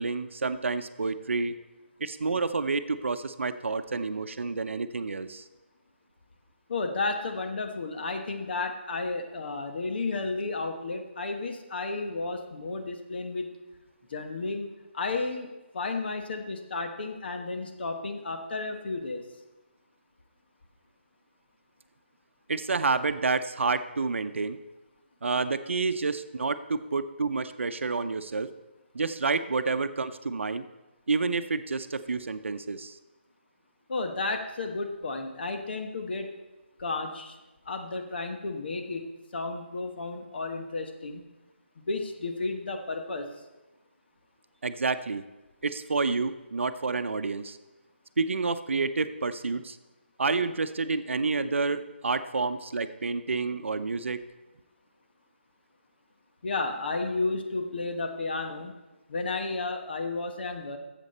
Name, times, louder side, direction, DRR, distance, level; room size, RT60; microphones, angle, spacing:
voice 1, 0.0-1.6 2.0-5.5 22.5-24.6 25.2-28.5 28.9-30.7 31.1-33.0 44.6-45.2 45.6-47.6 48.2-49.8 50.2-54.2, right 4 dB, 80° right, 11 dB, 0.7 m, -29 dB
voice 2, 6.7-13.5 14.1-14.7 14.9-19.2 33.9-36.3 36.8-37.4 37.7-39.0 39.3-41.2 41.8-43.3 56.4-58.7 59.1-60.8, left 3 dB, 55° left, 5 dB, 1.2 m, -32 dB
11.5 x 7.5 x 4.2 m, 1.1 s
hypercardioid pair, 165°, 7 cm